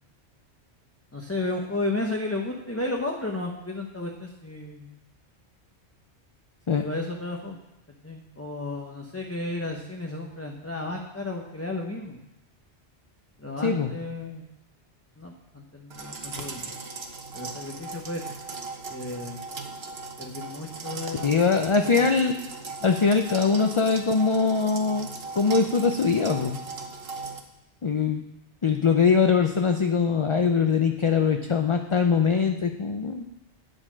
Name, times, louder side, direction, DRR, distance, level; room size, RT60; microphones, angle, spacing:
voice 1, 1.1-4.9 6.8-7.6 8.0-12.2 13.4-14.4 15.2-16.7 17.3-18.2 18.9-19.4 20.2-21.5 22.0-22.1, left 2 dB, 15° left, 0 dB, 0.8 m, -33 dB
sound 1, 15.9-27.4, right 4 dB, 65° right, 1.3 m, -38 dB
voice 2, 21.2-22.4 22.8-25.1 25.4-26.6 27.8-28.2 28.6-33.2, left 5 dB, 40° left, 5 dB, 0.5 m, -22 dB
8.9 x 7.8 x 6.2 m, 0.90 s
omnidirectional pair, 1.1 m